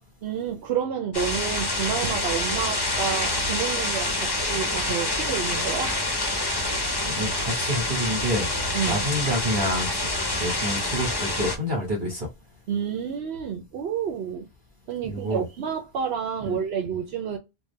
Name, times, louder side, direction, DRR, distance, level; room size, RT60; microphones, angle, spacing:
voice 1, 0.2-6.0 8.7-9.1 12.7-14.5 14.9-17.4, right 7 dB, 75° right, 0.9 m, -29 dB
sound 1, 1.1-11.6, left 2 dB, 25° left, 0.7 m, -27 dB
voice 2, 6.7-8.5 8.9-12.3 15.1-15.4 16.4-16.6, equal, 50° right, 1.3 m, -28 dB
3.6 x 2.2 x 3.1 m
omnidirectional pair, 1.1 m